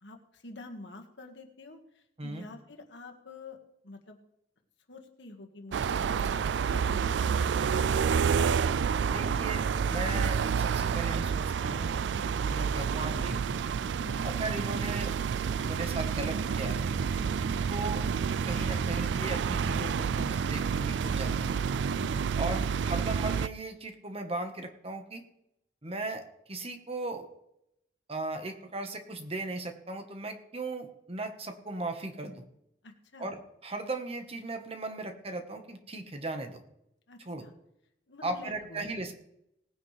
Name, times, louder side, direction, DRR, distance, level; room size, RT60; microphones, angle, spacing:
voice 1, 0.0-3.6 3.8-4.2 4.9-7.8 14.0-14.3 17.2-17.5 22.0-22.4 32.8-33.3 37.1-37.5 38.1-38.8, left 2 dB, 80° left, 3 dB, 1.9 m, -48 dB
sound 1, 5.7-23.5, right 6 dB, 80° right, 0.3 m, -29 dB
voice 2, 9.1-13.6 14.2-15.1 15.6-16.9 17.7-18.1 18.5-21.6 22.4-25.2 25.8-26.2 26.5-27.3 28.1-32.5 33.2-36.6 37.3-37.5 38.2-39.1, right 2 dB, 35° right, 6 dB, 1.4 m, -37 dB
19.0 x 9.7 x 3.4 m, 0.80 s
head